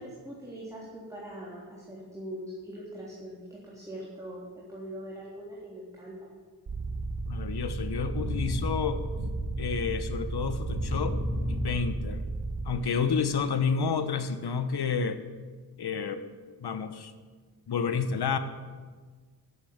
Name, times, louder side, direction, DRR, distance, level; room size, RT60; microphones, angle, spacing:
voice 1, 0.0-6.4, equal, 5° right, -6 dB, 3.5 m, -42 dB
sound 1, 6.7-12.6, right 1 dB, 60° right, 2.3 m, -32 dB
voice 2, 7.3-9.1 9.6-11.2 11.5-12.2 12.6-15.2 15.8-16.2 16.6-17.1 17.7-18.4, left 6 dB, 65° left, 10 dB, 1.2 m, -30 dB
11.0 x 8.1 x 8.7 m, 1.5 s
cardioid pair, 55°, 42 cm